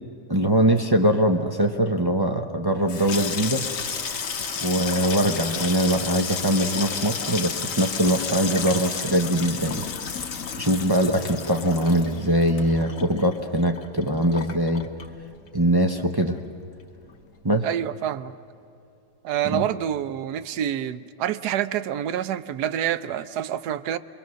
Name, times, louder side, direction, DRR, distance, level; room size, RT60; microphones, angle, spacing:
voice 1, 0.3-3.6 4.6-9.9 10.6-14.9 15.5-16.4 17.4-17.7 19.4-19.6, right 1 dB, 35° right, 3 dB, 0.3 m, -22 dB
Water tap faucet / Sink (filling or washing), 2.7-15.6 15.9-16.5 16.8-17.1, left 6 dB, 50° left, 1.2 m, -32 dB
voice 2, 17.6-18.3 19.2-24.0, right 10 dB, 65° right, 13 dB, 1.1 m, -27 dB
27.0 x 22.5 x 6.3 m, 2.6 s
omnidirectional pair, 2.0 m